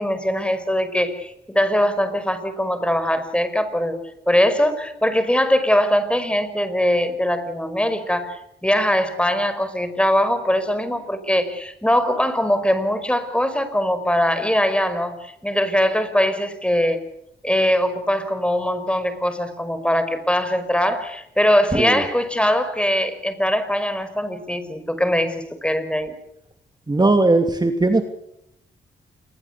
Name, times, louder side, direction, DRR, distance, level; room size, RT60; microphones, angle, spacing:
voice 1, 0.0-17.0 17.4-26.1, equal, 5° left, 11 dB, 5.5 m, -21 dB
voice 2, 21.7-22.0 26.9-28.0, right 2 dB, 20° right, 6 dB, 2.6 m, -18 dB
27.5 x 22.0 x 8.3 m, 0.80 s
cardioid pair, 65°, 18 cm